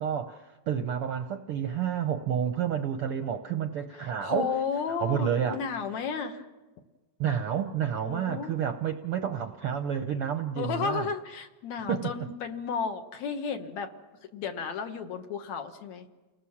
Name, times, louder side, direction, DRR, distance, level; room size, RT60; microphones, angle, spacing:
voice 1, 0.0-4.5 4.9-5.6 7.2-11.1 11.9-12.1, right 8 dB, 70° right, 7 dB, 1.3 m, -30 dB
voice 2, 3.9-6.5 8.0-8.6 10.6-13.9 14.3-16.1, left 6 dB, 65° left, 6 dB, 2.5 m, -33 dB
30.0 x 19.5 x 7.2 m, 1.2 s
omnidirectional pair, 3.5 m